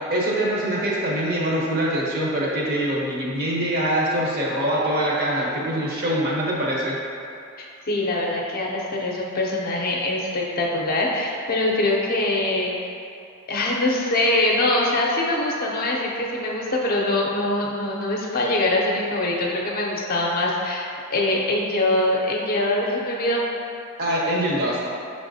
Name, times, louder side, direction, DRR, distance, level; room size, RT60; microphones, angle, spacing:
voice 1, 0.1-7.0 24.0-24.8, right 1 dB, 45° right, -4 dB, 0.8 m, -24 dB
voice 2, 7.6-12.7 13.5-23.4, left 1 dB, 45° left, -2 dB, 0.6 m, -23 dB
5.5 x 3.5 x 2.7 m, 2.6 s
head